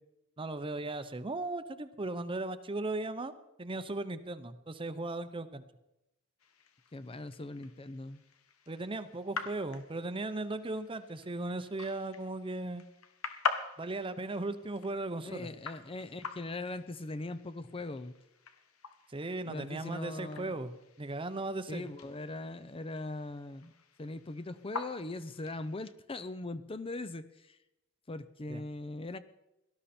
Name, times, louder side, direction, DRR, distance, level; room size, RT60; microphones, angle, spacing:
voice 1, 0.4-3.3 3.6-5.6 8.7-12.8 13.8-15.5 19.1-20.7 21.0-21.9 28.5-28.6, right 2 dB, 25° right, 12 dB, 0.7 m, -37 dB
sound 1, 6.4-25.9, left 5 dB, 85° left, 1.3 m, -44 dB
voice 2, 6.9-8.2 15.2-18.1 19.5-20.6 21.7-23.7 24.0-27.6 28.1-29.2, left 2 dB, 25° left, 13 dB, 0.6 m, -40 dB
18.0 x 12.5 x 4.3 m, 0.90 s
head